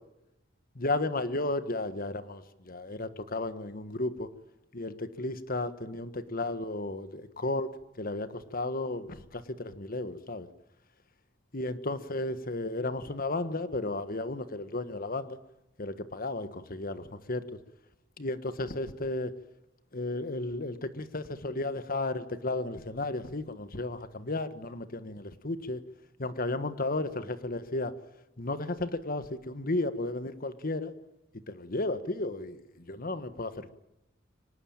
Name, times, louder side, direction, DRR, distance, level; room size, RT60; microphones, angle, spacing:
voice 1, 0.7-4.3 4.7-7.7 8.0-10.5 11.5-15.4 15.8-17.4 18.2-19.3 19.9-25.8 26.2-27.9 28.4-30.9 31.5-33.7, left 2 dB, 50° left, 11 dB, 1.5 m, -33 dB
24.5 x 19.0 x 9.0 m, 0.89 s
head